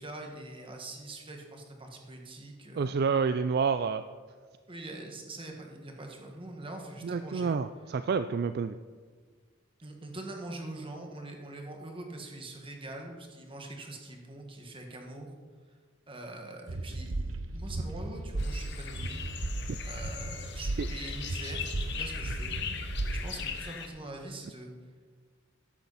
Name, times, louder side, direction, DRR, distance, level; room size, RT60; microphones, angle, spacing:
voice 1, 0.0-2.9 4.7-7.6 9.8-15.3 16.1-19.2 19.8-22.6 23.1-24.7, right 2 dB, 25° right, 2 dB, 1.7 m, -43 dB
voice 2, 2.8-4.0 7.0-8.8 20.8-20.9, right 5 dB, 50° right, 11 dB, 0.3 m, -28 dB
sound 1, 16.7-23.4, right 2 dB, 85° right, 1.0 m, -35 dB
sound 2, 18.4-23.9, left 7 dB, 60° left, 1.1 m, -40 dB
14.0 x 10.5 x 4.1 m, 1.5 s
head